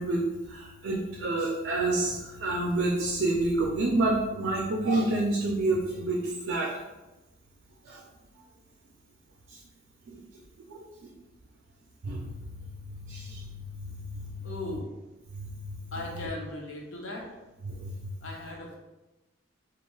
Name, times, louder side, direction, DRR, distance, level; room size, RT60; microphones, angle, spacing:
voice 1, 0.0-6.7 7.8-8.0 9.5-9.6 10.1-10.2 10.7-11.1 12.0-12.5 12.9-14.5 15.3-15.8 17.6-18.1, right 2 dB, 60° right, -2 dB, 0.4 m, -29 dB
voice 2, 14.4-14.9 15.9-17.3 18.2-18.8, left 1 dB, 75° left, -1 dB, 0.6 m, -37 dB
2.4 x 2.2 x 3.0 m, 1.0 s
head